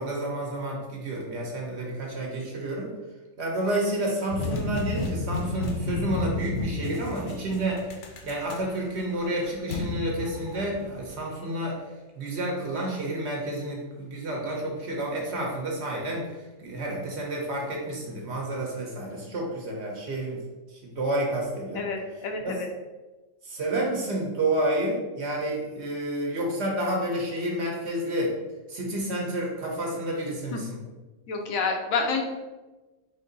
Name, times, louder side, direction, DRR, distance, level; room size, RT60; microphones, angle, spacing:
voice 1, 0.0-2.9 3.4-7.9 8.2-11.8 12.1-20.4 20.7-21.8 22.4-22.5 23.4-28.4 28.7-30.8, right 1 dB, 55° right, -2 dB, 1.2 m, -30 dB
sound 1, 4.3-11.2, left 3 dB, 65° left, 0.9 m, -32 dB
voice 2, 21.7-22.7 30.5-30.6 31.3-32.2, left 4 dB, 85° left, 2 dB, 1.1 m, -28 dB
4.7 x 2.7 x 3.9 m, 1.2 s
omnidirectional pair, 1.4 m